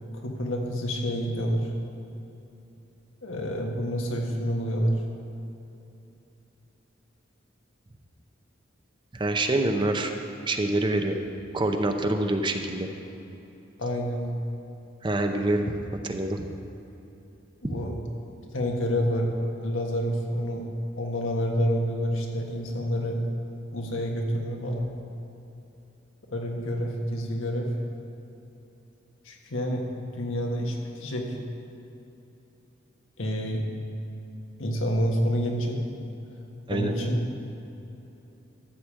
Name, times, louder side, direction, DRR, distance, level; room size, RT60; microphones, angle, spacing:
voice 1, 0.1-1.7 3.2-5.0 13.8-14.2 17.6-17.9 18.5-19.3 19.6-20.6 21.0-23.2 23.7-24.9 26.3-27.8 29.2-31.4 33.2-33.6 34.6-35.8 36.7-37.2, equal, 90° left, 1 dB, 1.5 m, -28 dB
voice 2, 9.1-10.1 10.5-11.2 11.5-12.9 15.0-16.5 17.6-17.7 36.7-36.9, right 2 dB, 25° right, 5 dB, 0.6 m, -26 dB
13.0 x 5.0 x 7.4 m, 3.0 s
head